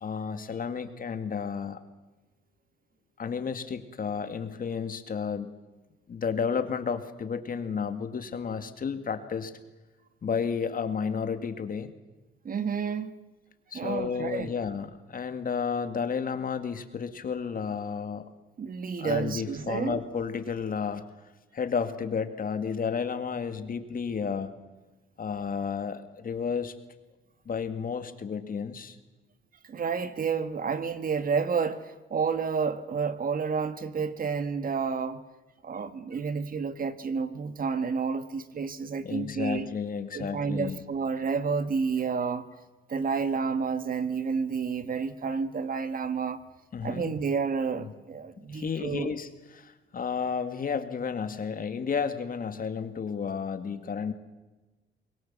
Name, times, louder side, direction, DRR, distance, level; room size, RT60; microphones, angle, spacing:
voice 1, 0.0-1.8 3.2-5.6 6.1-9.5 10.2-11.9 13.7-18.3 19.0-21.1 21.5-24.5 25.2-26.7 27.5-29.0 39.0-40.8 46.7-47.1 48.5-54.1, left 6 dB, 45° left, 2.0 m, -32 dB
voice 2, 12.4-13.1 13.7-14.5 18.6-20.0 29.6-35.2 35.6-39.7 40.1-42.5 42.9-46.4 46.8-49.1, right 5 dB, 45° right, 1.5 m, -30 dB
24.5 x 21.0 x 7.5 m
cardioid pair, 90°, 20 cm